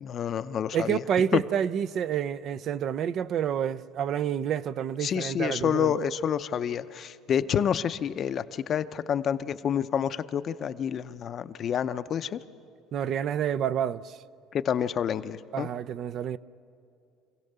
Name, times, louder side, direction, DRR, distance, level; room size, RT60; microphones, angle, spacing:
voice 1, 0.0-1.0 5.0-12.4 14.5-15.7, left 8 dB, 40° left, 0.6 m, -28 dB
voice 2, 0.7-5.9 12.9-14.2 15.5-16.4, right 9 dB, 45° right, 0.5 m, -28 dB
26.5 x 16.0 x 6.7 m
cardioid pair, 140°, 0 cm